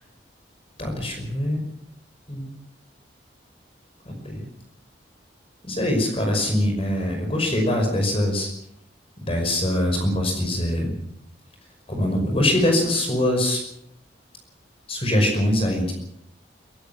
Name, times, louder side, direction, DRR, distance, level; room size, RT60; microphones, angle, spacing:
voice 1, 0.8-1.6 2.3-2.5 4.1-4.4 5.6-8.5 9.2-10.9 11.9-13.6 14.9-15.9, left 1 dB, 30° left, 3 dB, 5.6 m, -23 dB
22.5 x 16.5 x 7.3 m, 0.75 s
head